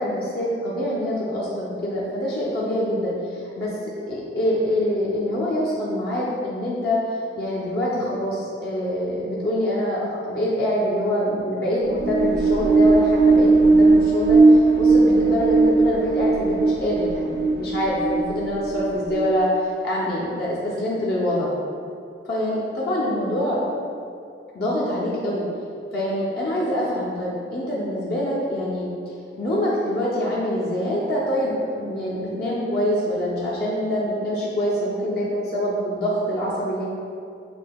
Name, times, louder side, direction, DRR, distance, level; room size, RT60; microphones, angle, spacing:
voice 1, 0.0-7.0 7.4-19.5 19.8-21.5 22.2-23.6 24.5-25.4 25.9-28.9 29.4-36.9, equal, 60° left, -7 dB, 0.7 m, -25 dB
sound 1, 11.8-19.5, right 3 dB, 60° right, 0.3 m, -18 dB
6.1 x 2.7 x 2.3 m, 2.4 s
head